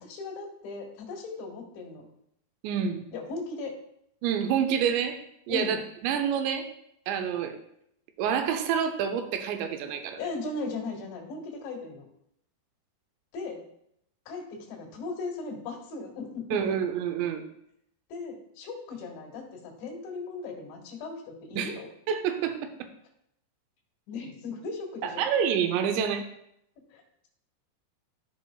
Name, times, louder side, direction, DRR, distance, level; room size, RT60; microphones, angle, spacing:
voice 1, 0.0-2.1 3.1-3.8 5.5-5.8 10.2-12.1 13.3-13.6 14.3-16.7 18.1-21.9 24.1-25.3 26.9-27.3, left 3 dB, 85° left, 0 dB, 4.0 m, -37 dB
voice 2, 2.6-3.0 4.2-5.2 5.5-5.8 6.0-6.7 7.1-7.6 8.2-10.2 16.5-17.4 21.6-21.8 22.1-22.5 22.8-22.9 25.0-26.3, right 8 dB, 85° right, 7 dB, 2.9 m, -27 dB
14.5 x 5.2 x 2.3 m, 0.75 s
omnidirectional pair, 5.0 m